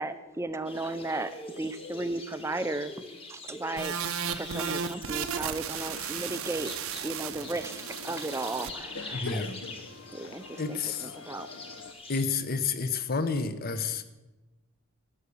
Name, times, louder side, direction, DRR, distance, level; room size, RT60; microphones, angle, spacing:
voice 1, 0.0-3.9 4.3-6.7 7.0-9.4 10.1-11.5, right 2 dB, 10° right, 11 dB, 0.5 m, -35 dB
sound 1, 0.6-12.2, left 2 dB, 25° left, 1.5 m, -45 dB
sound 2, 3.8-8.7, right 7 dB, 70° right, 0.7 m, -35 dB
sound 3, 5.0-11.9, left 4 dB, 70° left, 0.9 m, -46 dB
voice 2, 9.1-9.6 10.6-11.1 12.1-14.0, left 4 dB, 40° left, 11 dB, 0.8 m, -30 dB
13.0 x 6.8 x 8.3 m, 1.1 s
head